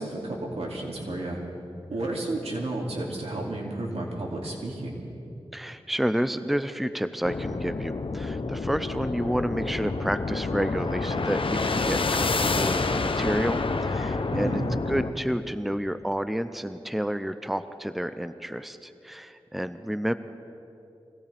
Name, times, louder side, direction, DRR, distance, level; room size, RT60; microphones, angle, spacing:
voice 1, 0.0-1.4 1.9-5.0 14.3-14.7, right 2 dB, 85° right, -2 dB, 2.7 m, -32 dB
voice 2, 5.5-20.1, equal, ahead, 11 dB, 0.6 m, -30 dB
sound 1, 7.2-15.1, left 3 dB, 60° left, 0.8 m, -28 dB
24.0 x 17.5 x 3.5 m, 2.8 s
cardioid pair, 45°, 10 cm